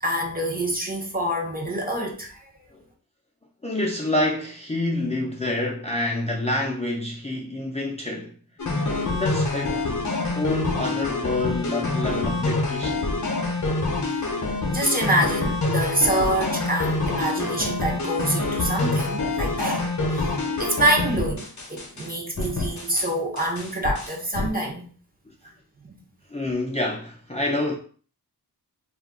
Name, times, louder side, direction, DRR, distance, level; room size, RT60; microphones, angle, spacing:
voice 1, 0.0-2.5 14.7-20.3 20.6-24.9 25.8-26.0, right 1 dB, 25° right, 0.6 m, -26 dB
voice 2, 3.6-8.3 9.1-10.0 10.3-13.1 20.3-20.6 25.3-25.4 26.3-27.8, left 2 dB, 15° left, 0.4 m, -28 dB
sound 1, 8.6-22.1 22.4-23.1 23.4-24.5, left 2 dB, 50° left, 0.7 m, -26 dB
2.4 x 2.2 x 3.5 m
wide cardioid pair, 80°, 38 cm